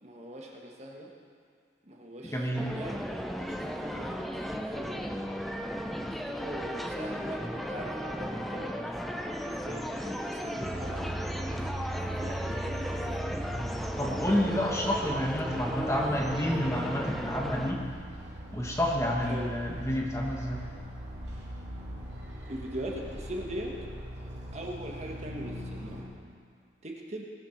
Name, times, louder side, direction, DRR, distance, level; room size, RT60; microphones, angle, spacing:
voice 1, 0.0-1.1 1.8-5.3 6.3-8.8 9.4-11.1 12.2-13.4 19.3-19.5 22.5-23.8 24.5-26.1 26.8-27.3, right 1 dB, 40° right, -1 dB, 1.6 m, -41 dB
voice 2, 2.2-2.7 14.0-17.8 18.5-20.7, equal, 15° left, -1 dB, 1.5 m, -29 dB
sound 1, 2.6-17.7, equal, ahead, 0.6 m, -35 dB
sound 2, 10.6-26.0, right 1 dB, 65° right, 2.9 m, -40 dB
20.0 x 7.1 x 5.9 m, 2.2 s
head